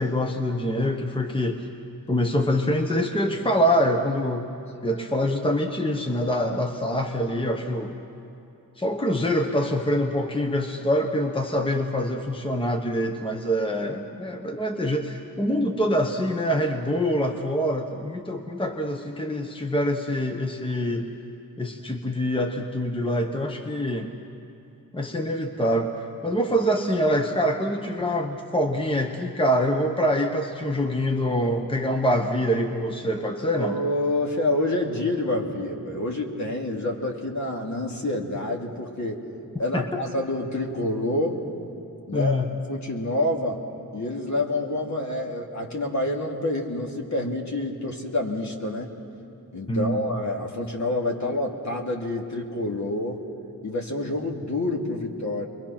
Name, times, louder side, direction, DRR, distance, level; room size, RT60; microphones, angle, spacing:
voice 1, 0.0-1.7 2.1-4.5 4.8-8.0 8.8-21.1 21.6-24.1 24.9-33.8 39.7-40.0 42.1-42.5 49.7-50.2, equal, 15° left, 4 dB, 1.2 m, -25 dB
voice 2, 33.6-39.2 39.6-41.4 42.1-42.4 42.7-43.6 43.9-48.9 49.5-53.2 53.6-55.5, left 1 dB, 50° left, 1 dB, 2.6 m, -27 dB
28.5 x 22.5 x 5.9 m, 2.8 s
wide cardioid pair, 85°, 37 cm